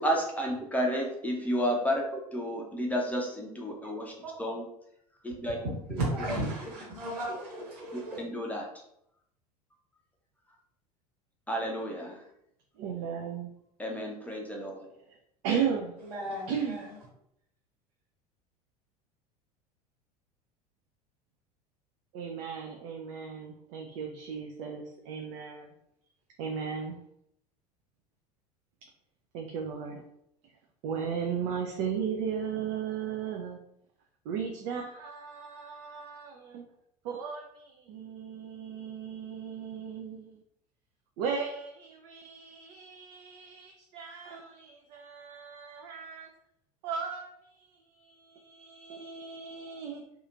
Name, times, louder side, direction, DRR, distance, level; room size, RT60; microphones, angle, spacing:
voice 1, 0.0-2.0 2.3-4.1 4.4-4.6 5.2-5.6 7.9-8.7 11.5-12.2 13.8-14.8, equal, 5° left, -1 dB, 0.6 m, -31 dB
voice 2, 5.2-8.2 16.0-17.0, right 1 dB, 75° right, -6 dB, 1.5 m, -35 dB
voice 3, 12.8-13.5 15.1-15.2 15.4-15.9 16.5-16.8 22.1-25.7 26.4-27.0 29.3-30.0 30.8-33.6 34.2-36.6 37.0-40.4 41.2-46.3 46.8-50.0, right 7 dB, 55° right, 2 dB, 0.4 m, -36 dB
2.8 x 2.4 x 2.5 m, 0.76 s
figure-of-eight pair, 75°, 20 cm